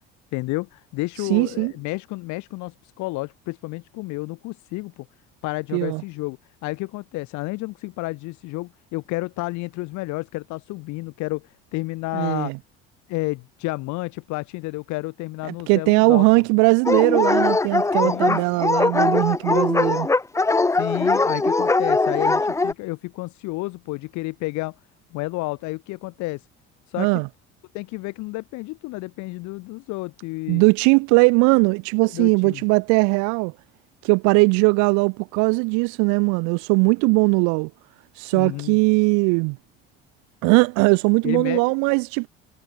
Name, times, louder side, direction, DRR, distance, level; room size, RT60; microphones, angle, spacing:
voice 1, 0.3-5.1 5.4-12.5 13.1-16.3 18.0-18.4 20.7-24.8 25.1-26.4 26.9-27.1 27.7-30.6 32.1-32.6 38.3-38.8 41.2-41.7, left 22 dB, 75° left, 6.9 m, -31 dB
voice 2, 1.2-1.7 5.7-6.0 12.1-12.6 15.7-20.1 27.0-27.3 30.5-33.5 34.0-37.7 38.2-39.6 40.4-42.3, right 33 dB, 80° right, 1.4 m, -19 dB
Dog, 16.9-22.7, left 3 dB, 10° left, 0.6 m, -20 dB
supercardioid pair, 85°, 29 cm